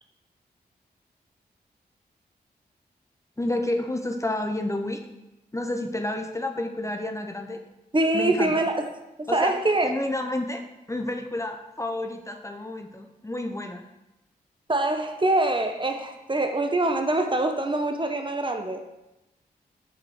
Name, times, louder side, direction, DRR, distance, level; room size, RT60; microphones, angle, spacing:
voice 1, 3.4-5.0 5.5-7.6 8.1-8.6 9.3-9.6 9.8-10.6 10.9-13.8, left 1 dB, 15° left, 4 dB, 0.9 m, -30 dB
voice 2, 7.9-8.8 9.2-9.9 14.7-18.8, right 2 dB, 30° right, 5 dB, 1.2 m, -24 dB
5.9 x 5.0 x 6.5 m, 0.96 s
cardioid pair, 45°, 17 cm